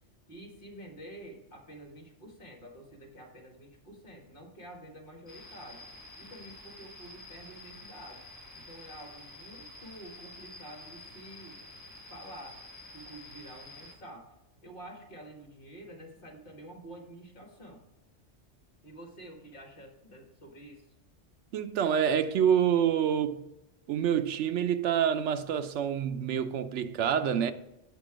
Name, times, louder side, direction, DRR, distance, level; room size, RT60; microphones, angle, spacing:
voice 1, 0.3-5.9 6.2-8.2 8.5-11.6 12.1-12.6 12.9-14.3 14.6-17.8 18.8-20.9, right 1 dB, 50° left, 1.7 m, -48 dB
sound 1, 5.3-13.9, left 2 dB, 15° left, 1.5 m, -49 dB
voice 2, 21.5-23.5 23.9-27.5, right 8 dB, 80° right, 0.9 m, -27 dB
8.3 x 5.2 x 4.9 m
omnidirectional pair, 1.2 m